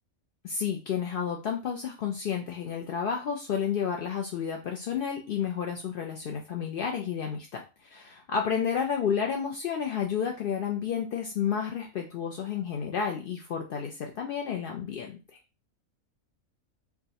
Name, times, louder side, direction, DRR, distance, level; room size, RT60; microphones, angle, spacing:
voice 1, 0.4-15.2, left 7 dB, 70° left, 2 dB, 0.5 m, -31 dB
4.5 x 2.1 x 2.7 m, 0.30 s
omnidirectional pair, 1.4 m